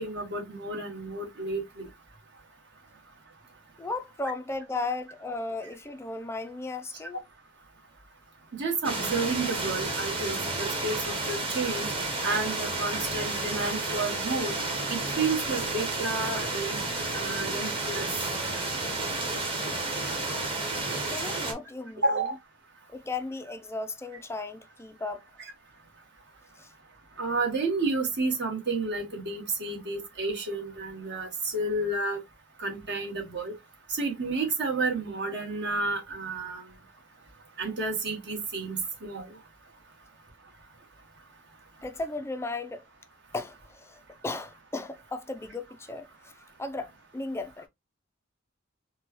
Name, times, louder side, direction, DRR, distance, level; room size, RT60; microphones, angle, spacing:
voice 1, 0.0-1.9 8.5-11.9 12.2-14.5 14.9-16.8 17.1-18.1 22.0-22.4 27.2-32.2 32.6-33.5 33.9-36.7 37.6-39.4, right 3 dB, 60° right, 1.4 m, -31 dB
voice 2, 3.8-7.2 21.1-22.2 22.9-25.2 26.6-26.7 41.8-42.8 43.3-46.1 46.6-47.7, left 3 dB, 15° left, 0.4 m, -35 dB
sound 1, 8.8-21.5, right 2 dB, 25° right, 1.1 m, -31 dB
4.4 x 2.2 x 3.0 m
head